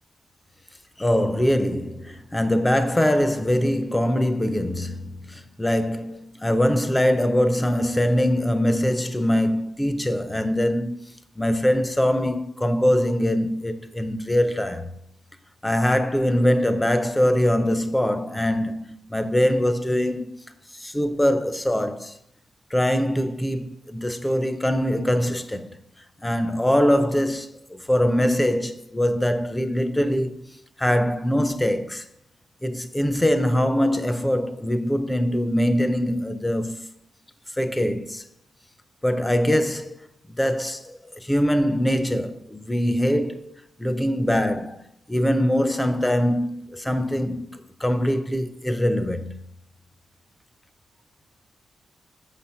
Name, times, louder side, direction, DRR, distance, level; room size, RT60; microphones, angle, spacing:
voice 1, 1.0-11.0 11.4-15.0 15.6-20.3 20.7-22.2 22.7-25.8 26.2-30.4 30.8-32.0 32.6-36.9 37.6-38.2 39.0-39.9 40.3-43.5 43.8-47.5 47.8-49.3, equal, 10° left, 0.5 m, -23 dB
6.8 x 5.7 x 5.6 m
wide cardioid pair, 160°, 0 cm